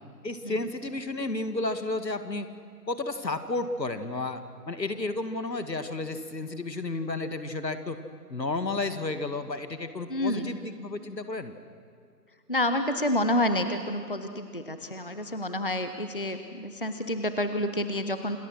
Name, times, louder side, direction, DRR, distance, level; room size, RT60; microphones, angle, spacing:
voice 1, 0.2-2.5 2.9-8.0 8.3-11.5, left 2 dB, 85° left, 9 dB, 2.1 m, -32 dB
voice 2, 10.1-10.5 12.5-18.4, left 1 dB, 35° left, 9 dB, 0.8 m, -29 dB
27.0 x 20.0 x 6.3 m, 2.4 s
figure-of-eight pair, 170°, 49 cm